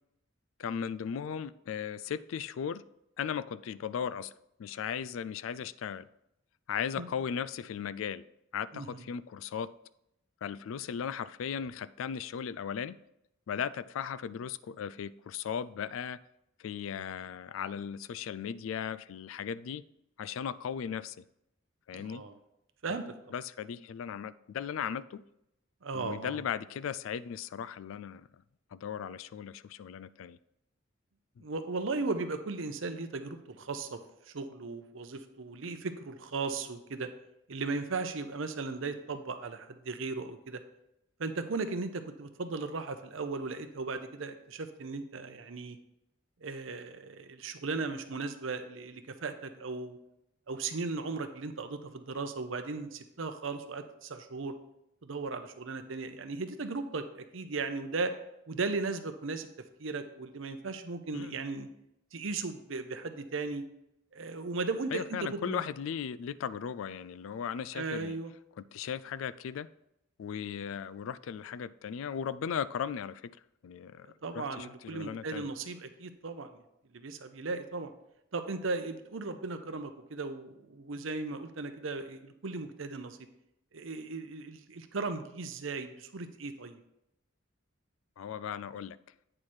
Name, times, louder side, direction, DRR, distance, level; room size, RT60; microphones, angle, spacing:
voice 1, 0.6-2.8 3.2-4.3 4.6-6.1 6.7-8.2 8.5-9.7 10.4-13.0 13.5-16.2 16.6-19.8 20.2-21.2 21.9-22.2 22.9-23.0 23.3-25.2 25.9-28.3 28.7-30.4 31.4-31.5 61.1-61.4 64.9-68.2 68.6-69.7 70.2-73.3 73.6-75.5 88.2-89.0, left 7 dB, 75° left, 16 dB, 0.3 m, -37 dB
voice 2, 21.9-22.4 22.8-23.3 25.8-26.4 31.4-34.0 34.3-37.1 37.5-40.6 41.2-45.8 46.4-50.0 50.5-54.6 55.0-58.1 58.5-59.5 59.8-61.7 62.1-63.6 64.1-65.6 67.7-68.3 74.2-76.5 76.9-77.9 78.3-83.2 83.7-86.8, right 3 dB, 70° right, 8 dB, 0.7 m, -37 dB
8.8 x 4.8 x 4.3 m, 0.83 s
head